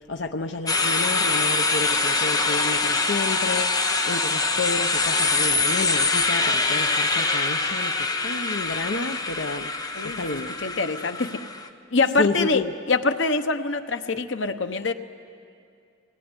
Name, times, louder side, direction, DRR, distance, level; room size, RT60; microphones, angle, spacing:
voice 1, 0.1-7.9 8.2-9.7 10.0-10.5 12.2-12.7, left 3 dB, 70° left, 4 dB, 0.8 m, -30 dB
sound 1, 0.7-11.7, left 3 dB, 20° left, 1.1 m, -24 dB
voice 2, 10.6-11.4 11.9-14.9, left 3 dB, 90° left, 9 dB, 1.0 m, -24 dB
25.0 x 20.0 x 9.8 m, 2.4 s
head